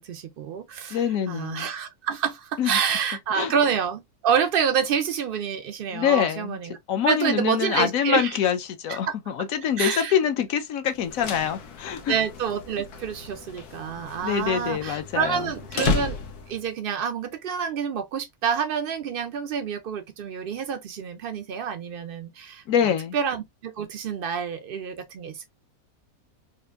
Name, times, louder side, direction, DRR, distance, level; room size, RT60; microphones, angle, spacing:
voice 1, 0.0-6.8 7.0-8.4 8.9-9.1 9.8-10.2 12.1-16.2 16.5-25.5, right 7 dB, 85° right, 0.4 m, -28 dB
voice 2, 0.9-1.7 2.6-2.8 3.3-3.5 5.9-6.6 6.9-8.6 8.8-12.1 14.2-15.5 22.7-23.2, left 9 dB, 70° left, 1.0 m, -25 dB
sound 1, 10.9-16.7, left 4 dB, 90° left, 1.3 m, -33 dB
4.3 x 2.5 x 2.3 m
omnidirectional pair, 1.6 m